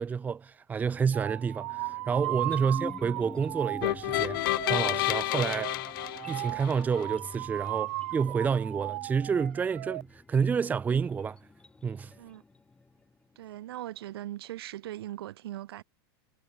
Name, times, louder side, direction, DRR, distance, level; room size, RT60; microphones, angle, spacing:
voice 1, 0.0-4.4 4.7-5.7 6.3-11.4 11.8-12.1, right 6 dB, 10° right, 1.4 m, -29 dB
sound 1, 1.1-10.0, right 22 dB, 50° right, 1.5 m, -37 dB
sound 2, 1.3-13.4, left 3 dB, 5° left, 3.3 m, -49 dB
sound 3, 3.8-7.0, left 18 dB, 55° left, 0.5 m, -30 dB
voice 2, 13.4-15.8, right 14 dB, 70° right, 3.7 m, -40 dB
supercardioid pair, 160°, 13 cm